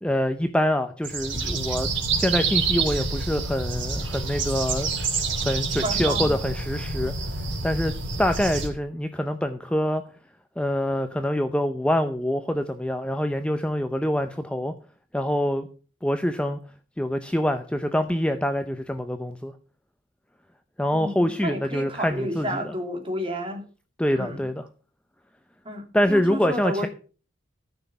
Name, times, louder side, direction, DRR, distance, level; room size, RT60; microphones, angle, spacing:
voice 1, 0.0-4.9 5.4-10.0 10.6-14.7 15.1-15.7 16.0-16.6 17.0-19.5 20.8-22.7 24.0-24.7 25.9-26.9, equal, 5° left, 8 dB, 0.5 m, -25 dB
sound 1, 1.0-8.7, right 4 dB, 65° right, 3.2 m, -27 dB
voice 2, 5.8-6.3 20.9-23.6 24.2-24.4 25.6-26.9, equal, 25° right, 3 dB, 2.5 m, -31 dB
13.5 x 6.2 x 6.8 m, 0.39 s
head